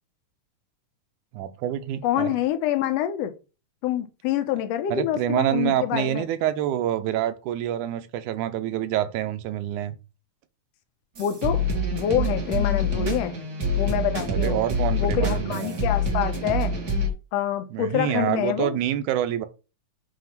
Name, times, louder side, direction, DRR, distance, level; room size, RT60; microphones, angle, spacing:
voice 1, 1.3-2.3 4.9-10.0 14.3-15.8 17.7-19.5, right 12 dB, 85° right, 2.0 m, -27 dB
voice 2, 2.0-3.3 3.8-6.2 11.2-11.6 11.9-13.3 13.8-14.6 15.0-16.7 17.3-18.8, left 11 dB, 75° left, 1.5 m, -26 dB
sound 1, 11.2-17.1, left 1 dB, 40° right, 1.4 m, -26 dB
7.6 x 2.8 x 5.8 m
omnidirectional pair, 3.6 m